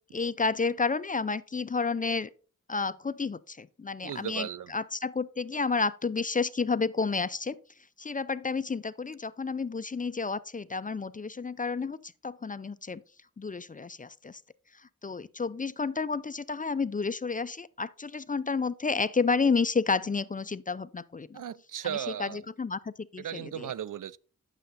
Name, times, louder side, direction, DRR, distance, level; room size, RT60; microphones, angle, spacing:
voice 1, 0.1-2.3 2.7-7.6 8.0-13.0 13.4-14.4 14.8-21.4 21.8-23.7, left 4 dB, 25° left, 0.4 m, -31 dB
voice 2, 4.0-4.7 21.3-22.4 23.2-24.2, right 10 dB, 70° right, 0.5 m, -36 dB
9.0 x 6.6 x 4.0 m
cardioid pair, 60°, 32 cm